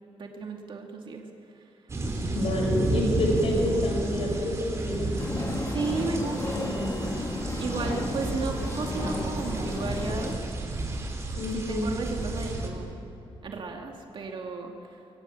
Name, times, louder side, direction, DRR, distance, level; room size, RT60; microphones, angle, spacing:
voice 1, 0.2-1.2 5.7-7.2 7.6-10.4 11.5-12.9 13.4-14.7, right 4 dB, 55° right, 1 dB, 2.4 m, -34 dB
sound 1, 1.9-12.7, right 2 dB, 30° right, 4.4 m, -32 dB
voice 2, 2.3-5.1 11.4-11.8, left 1 dB, 75° left, 0 dB, 6.0 m, -27 dB
sound 2, 5.2-10.3, left 2 dB, 30° left, 3.0 m, -32 dB
26.5 x 23.0 x 8.9 m, 2.8 s
wide cardioid pair, 150°, 10 cm